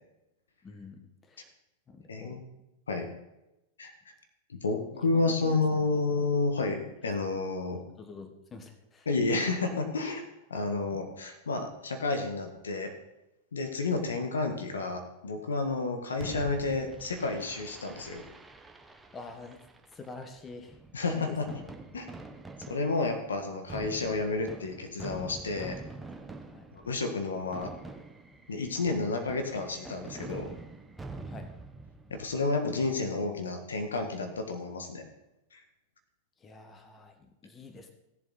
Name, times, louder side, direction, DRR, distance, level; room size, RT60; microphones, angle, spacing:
voice 1, 0.6-1.5 1.9-2.4 4.9-6.0 8.0-9.1 18.9-19.6 19.9-20.8 21.1-21.6 26.5-26.7 31.2-31.5 36.4-37.9, left 3 dB, 20° left, 6 dB, 1.6 m, -47 dB
voice 2, 2.1-2.4 2.9-3.1 3.8-3.9 4.5-7.8 9.0-10.2 10.5-12.9 13.5-18.2 20.9-21.5 21.9-22.1 22.7-25.8 26.7-27.7 28.5-30.5 32.1-35.0 35.5-35.6, left 3 dB, 80° left, 5 dB, 1.6 m, -30 dB
Fireworks, 16.2-32.3, right 3 dB, 10° right, 1.0 m, -46 dB
16.0 x 7.4 x 4.2 m, 0.93 s
hypercardioid pair, 95°, 0 cm